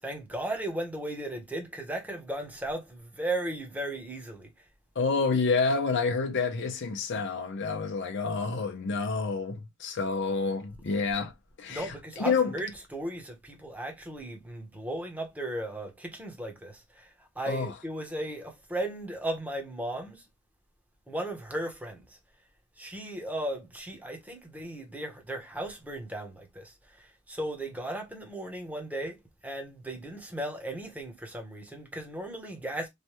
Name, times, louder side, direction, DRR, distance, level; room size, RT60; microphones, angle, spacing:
voice 1, 0.0-4.5 11.7-17.1 17.4-20.2 21.1-22.2 22.8-27.0 27.3-29.2 29.4-32.9, right 1 dB, 10° right, 0.8 m, -36 dB
voice 2, 5.0-11.3 11.6-12.5 17.5-17.7, left 4 dB, 60° left, 0.6 m, -28 dB
3.1 x 2.2 x 3.0 m
head